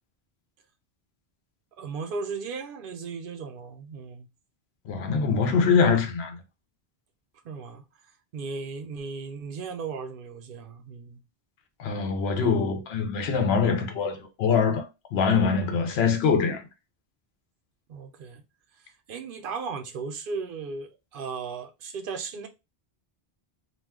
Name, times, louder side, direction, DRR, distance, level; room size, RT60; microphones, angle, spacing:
voice 1, 1.8-4.3 7.4-7.8 8.3-11.2 17.9-18.4 19.1-22.5, right 5 dB, 60° right, 0.7 m, -36 dB
voice 2, 4.9-6.4 11.8-16.7, left 5 dB, 80° left, 0.9 m, -24 dB
2.4 x 2.2 x 3.4 m
omnidirectional pair, 1.1 m